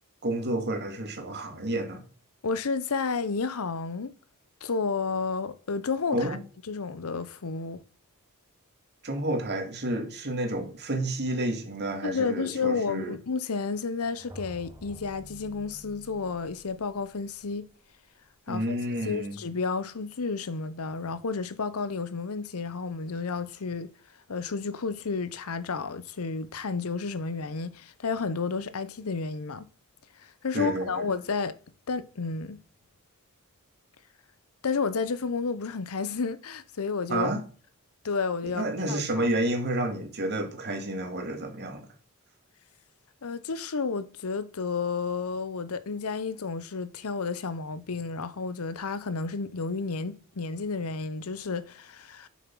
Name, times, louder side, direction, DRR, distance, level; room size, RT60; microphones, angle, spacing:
voice 1, 0.2-2.0 6.1-6.4 9.0-13.2 18.5-19.4 30.5-31.0 37.1-37.4 38.4-41.9, right 1 dB, 50° right, 2.3 m, -30 dB
voice 2, 2.4-4.1 4.6-6.4 6.7-7.8 12.0-17.7 18.5-18.8 19.0-23.9 24.3-29.7 30.2-31.5 31.9-32.6 34.6-37.3 38.0-39.3 43.2-52.3, left 4 dB, 70° left, 0.7 m, -31 dB
sound 1, 13.9-17.9, equal, 20° right, 2.4 m, -49 dB
7.2 x 7.1 x 6.1 m
head